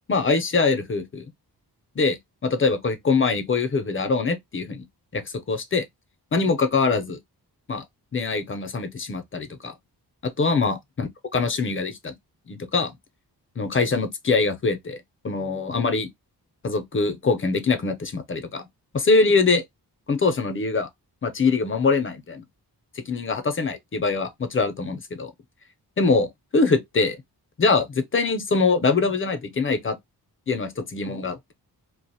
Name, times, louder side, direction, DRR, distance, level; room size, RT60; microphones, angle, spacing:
voice 1, 0.1-1.3 2.0-4.9 5.1-5.8 6.3-7.2 7.7-7.8 8.1-9.7 10.2-12.1 12.5-13.0 13.6-15.0 15.2-16.1 16.6-18.7 18.9-19.6 20.1-20.9 21.2-22.4 23.0-25.3 26.0-27.2 27.6-30.0 30.5-31.5, left 4 dB, 30° left, 0.4 m, -23 dB
2.4 x 2.0 x 2.6 m
wide cardioid pair, 105°, 40 cm